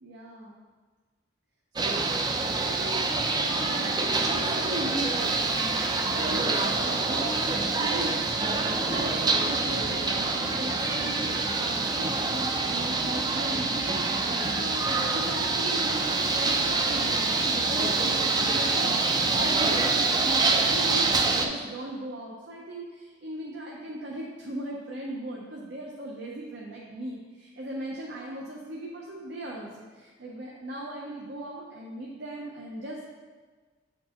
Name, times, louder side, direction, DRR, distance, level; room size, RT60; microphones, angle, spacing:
voice 1, 0.0-0.6 1.8-2.1 2.6-3.1 3.4-33.1, right 1 dB, 70° right, -3 dB, 0.7 m, -38 dB
sound 1, 1.8-21.5, right 3 dB, 25° right, 0.4 m, -26 dB
8.4 x 4.4 x 2.9 m, 1.4 s
head